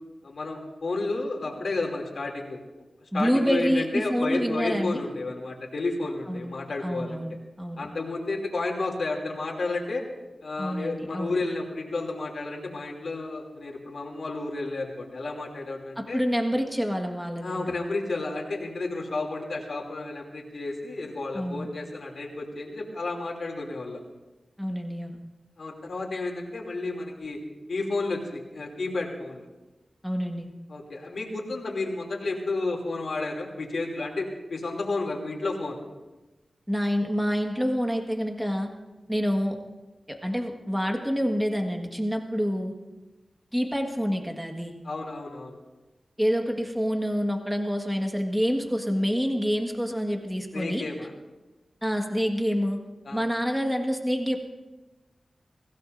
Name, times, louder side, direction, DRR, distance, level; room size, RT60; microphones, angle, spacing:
voice 1, 0.2-2.6 3.1-7.2 7.8-10.0 10.4-16.2 17.4-24.0 25.6-27.4 27.7-29.4 30.7-35.8 44.8-45.6 50.5-51.1 53.0-53.2, left 3 dB, 75° left, 0 dB, 2.8 m, -31 dB
voice 2, 3.1-5.0 6.3-6.5 6.8-7.9 10.6-11.4 16.0-17.7 21.3-21.7 24.6-25.2 30.0-30.5 36.7-38.7 39.1-39.6 40.1-42.7 43.5-44.8 46.2-50.8 51.8-52.8 53.1-54.4, equal, 5° right, 3 dB, 1.6 m, -27 dB
23.0 x 16.0 x 2.6 m, 1.1 s
wide cardioid pair, 65°, 0 cm